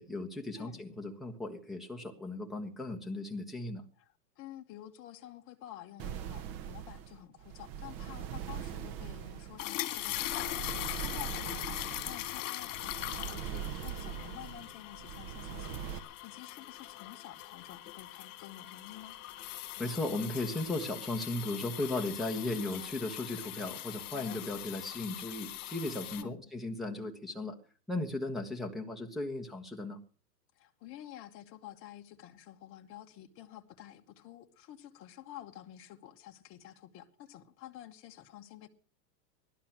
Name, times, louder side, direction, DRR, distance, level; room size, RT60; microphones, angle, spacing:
voice 1, 0.0-3.8 19.8-27.5 27.9-30.0, left 2 dB, ahead, 1.3 m, -36 dB
voice 2, 4.0-19.2 24.1-24.4 26.1-26.4 30.5-38.7, left 12 dB, 25° left, 1.2 m, -50 dB
sound 1, 6.0-16.0, right 10 dB, 30° right, 1.1 m, -42 dB
sound 2, 9.6-26.2, left 15 dB, 50° left, 2.0 m, -41 dB
17.5 x 12.0 x 6.0 m
hypercardioid pair, 135°, 49 cm